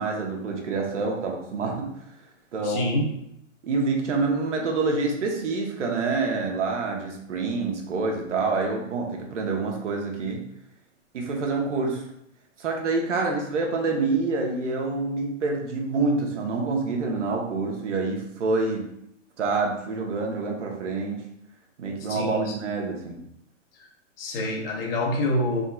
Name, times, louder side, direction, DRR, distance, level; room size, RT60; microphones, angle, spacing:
voice 1, 0.0-1.9 2.5-3.0 3.6-10.4 11.1-12.1 12.6-18.9 19.4-21.3 21.8-23.2, right 3 dB, 65° right, 1 dB, 1.0 m, -27 dB
voice 2, 2.6-3.1 22.1-22.5 22.8-22.9 24.2-25.6, left 1 dB, 45° left, 0 dB, 1.0 m, -26 dB
4.2 x 3.7 x 2.3 m, 0.75 s
hypercardioid pair, 120°, 38 cm